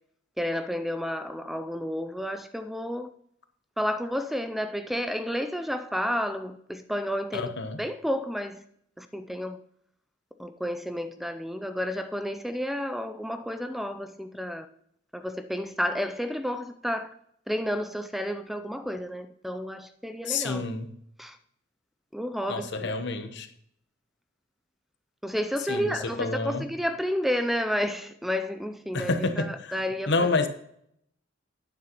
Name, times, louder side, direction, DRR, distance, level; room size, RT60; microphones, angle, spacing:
voice 1, 0.4-3.1 3.8-7.5 7.8-8.6 9.0-9.6 10.4-14.7 15.1-17.1 17.5-20.6 21.2-21.4 22.1-22.9 25.2-30.3, equal, ahead, 0.4 m, -31 dB
voice 2, 7.3-7.8 20.3-20.9 22.5-23.5 25.7-26.7 28.9-29.7 30.1-30.5, left 3 dB, 60° left, 1.0 m, -28 dB
11.0 x 9.4 x 3.0 m
head